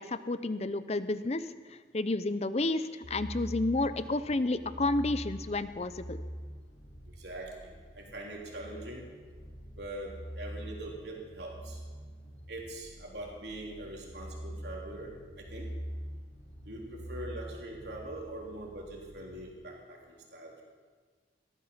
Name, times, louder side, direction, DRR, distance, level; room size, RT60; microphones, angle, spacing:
voice 1, 0.0-1.5 1.9-6.2, left 2 dB, 35° left, 13 dB, 0.6 m, -31 dB
sound 1, 3.0-19.5, equal, 85° left, 6.7 m, -45 dB
voice 2, 7.2-7.5 7.9-9.1 9.8-11.8 12.5-15.1 15.4-15.7 16.7-20.0 20.3-20.6, right 1 dB, 65° right, -1 dB, 3.7 m, -42 dB
18.5 x 13.5 x 5.6 m, 1.5 s
head